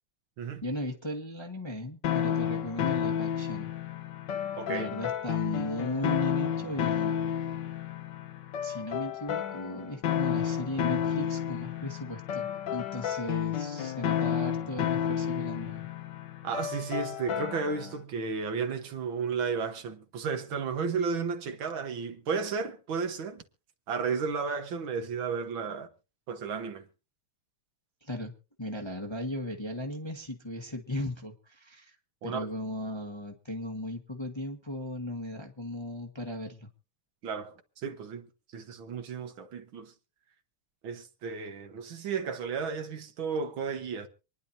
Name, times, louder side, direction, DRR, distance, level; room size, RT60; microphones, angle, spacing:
voice 1, 0.6-3.7 4.7-7.6 8.6-15.9 28.0-28.3 28.6-31.9 32.2-36.7, left 1 dB, 15° left, 1.2 m, -36 dB
sound 1, 2.0-18.0, left 9 dB, 60° left, 1.4 m, -31 dB
voice 2, 4.6-4.9 16.4-23.4 23.9-25.9 26.3-26.9 32.2-32.5 37.2-38.3 38.5-39.9 40.8-44.1, right 5 dB, 65° right, 1.9 m, -33 dB
26.5 x 10.5 x 2.7 m
omnidirectional pair, 2.4 m